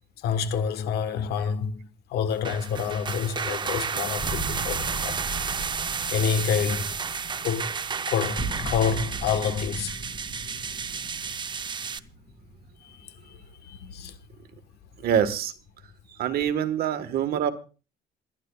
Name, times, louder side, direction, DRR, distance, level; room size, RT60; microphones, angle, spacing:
voice 1, 0.2-5.2 6.1-7.0 7.4-10.0 12.8-14.1, left 7 dB, 75° left, 1.3 m, -28 dB
sound 1, 2.3-12.0, right 6 dB, 25° right, 0.6 m, -32 dB
sound 2, 4.2-13.1, right 1 dB, 10° left, 7.5 m, -38 dB
voice 2, 15.0-15.5 16.2-17.5, right 9 dB, 65° right, 1.4 m, -25 dB
27.5 x 11.0 x 2.4 m
cardioid pair, 110°, 17 cm